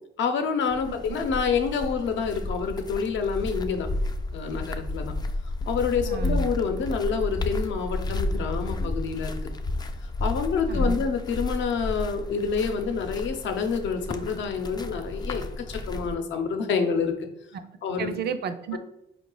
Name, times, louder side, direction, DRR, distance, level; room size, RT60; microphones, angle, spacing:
voice 1, 0.2-3.9 4.3-5.1 5.7-9.6 10.2-17.1 17.8-18.1 18.7-18.8, left 5 dB, 70° left, 6 dB, 0.7 m, -27 dB
sound 1, 0.7-16.1, left 2 dB, 20° left, 0.3 m, -31 dB
voice 2, 0.9-1.2 6.0-6.5 10.7-11.0 17.5-17.6 18.0-18.8, right 7 dB, 55° right, 9 dB, 0.5 m, -33 dB
4.6 x 2.4 x 3.8 m, 0.84 s
cardioid pair, 90°, 20 cm